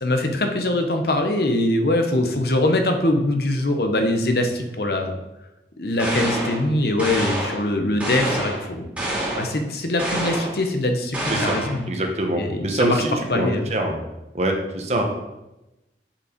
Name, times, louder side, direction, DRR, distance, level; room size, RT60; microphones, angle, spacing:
voice 1, 0.0-5.1 5.8-8.9 9.4-11.9 12.3-13.0 13.3-13.6, left 1 dB, 60° left, 5 dB, 0.9 m, -22 dB
sound 1, 6.0-6.6 7.0-7.6 8.0-8.6 9.0-9.5 10.0-10.6 11.1-11.8, right 1 dB, 10° right, 2.5 m, -26 dB
voice 2, 11.3-11.6 11.9-14.0 14.3-15.0, right 1 dB, 40° right, 3 dB, 1.0 m, -24 dB
7.0 x 5.5 x 5.0 m, 0.97 s
head